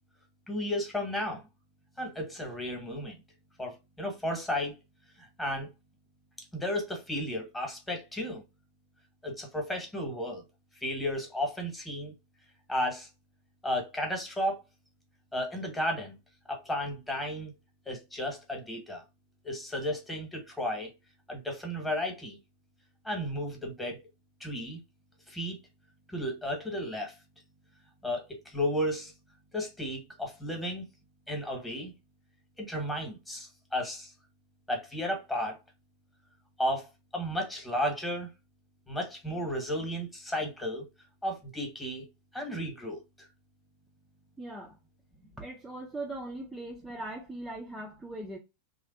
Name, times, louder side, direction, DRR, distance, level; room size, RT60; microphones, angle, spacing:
voice 1, 0.5-1.4 2.0-3.2 3.6-4.7 5.2-5.7 6.5-8.4 9.2-10.4 10.8-12.1 12.7-13.1 13.6-14.6 15.3-16.2 16.5-17.5 17.9-19.0 19.4-20.9 21.3-22.4 23.0-24.0 24.4-24.8 25.3-25.6 26.1-27.1 28.0-29.1 29.5-30.8 31.3-31.9 32.6-34.1 34.7-35.6 36.6-36.9 37.1-38.3 38.9-40.9 41.2-42.0 42.3-43.0, left 1 dB, 10° left, 1.3 m, -33 dB
voice 2, 44.4-44.8 45.4-48.4, right 2 dB, 10° right, 0.6 m, -40 dB
3.2 x 2.5 x 2.5 m
figure-of-eight pair, 90°, 0 cm